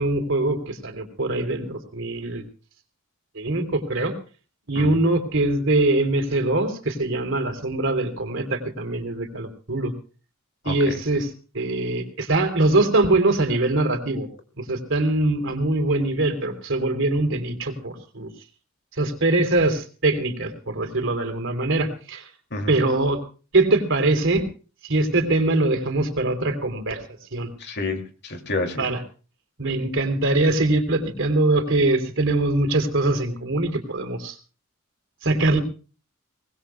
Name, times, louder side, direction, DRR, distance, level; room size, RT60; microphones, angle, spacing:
voice 1, 0.0-2.4 3.4-4.1 4.7-9.9 10.7-14.3 14.6-18.3 19.0-22.2 22.7-23.2 23.5-24.4 24.8-27.0 27.3-27.5 28.8-29.0 29.6-34.4 35.2-35.6, right 2 dB, 65° right, 6 dB, 3.4 m, -22 dB
voice 2, 10.6-11.0 22.5-22.7 27.6-28.9, left 2 dB, 55° left, 5 dB, 2.6 m, -29 dB
24.0 x 20.0 x 2.3 m, 0.37 s
head